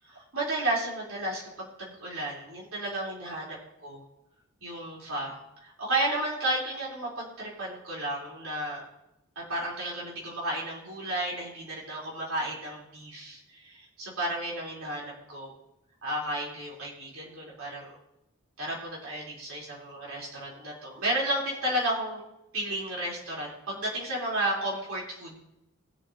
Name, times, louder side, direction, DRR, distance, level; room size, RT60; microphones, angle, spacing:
voice 1, 0.3-3.6 3.8-4.0 4.6-8.8 9.4-15.5 16.0-18.0 18.6-22.2 22.5-25.4, right 1 dB, 70° right, -4 dB, 3.6 m, -33 dB
21.0 x 7.3 x 2.8 m, 0.86 s
head